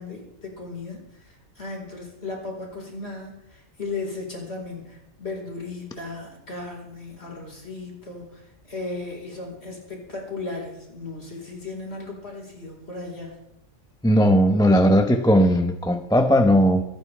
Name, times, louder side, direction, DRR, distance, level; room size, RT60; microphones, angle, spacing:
voice 1, 0.0-13.5, left 3 dB, 45° left, -1 dB, 4.9 m, -36 dB
voice 2, 14.0-16.8, equal, 5° left, 6 dB, 0.8 m, -17 dB
26.0 x 10.0 x 3.5 m, 0.89 s
omnidirectional pair, 1.5 m